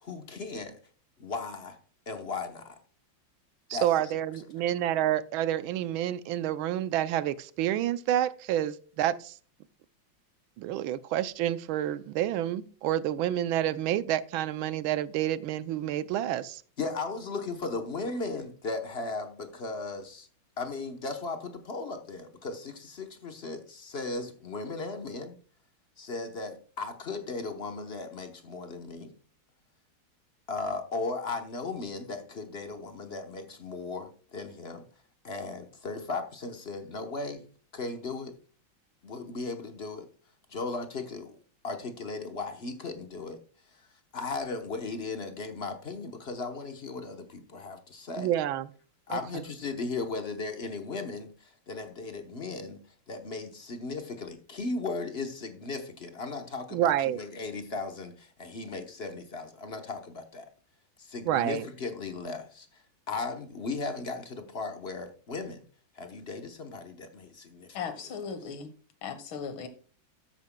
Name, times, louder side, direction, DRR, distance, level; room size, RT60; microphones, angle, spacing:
voice 1, 0.0-0.8 1.2-1.8 2.1-2.8 3.7-4.0 16.8-20.3 20.6-25.4 26.0-29.1 30.5-34.8 35.2-37.4 37.7-38.3 39.0-40.1 40.5-41.4 41.6-43.4 43.7-43.8 44.1-48.3 49.1-52.8 53.1-60.5 61.0-65.6 65.9-68.3, left 3 dB, 45° left, 0.9 m, -36 dB
voice 2, 3.7-9.3 10.6-16.6 48.2-48.7 56.7-57.2 61.3-61.6, right 12 dB, 85° right, 1.4 m, -28 dB
voice 3, 67.7-68.7 69.0-69.7, left 6 dB, 80° left, 2.0 m, -37 dB
13.0 x 8.9 x 2.2 m
omnidirectional pair, 2.2 m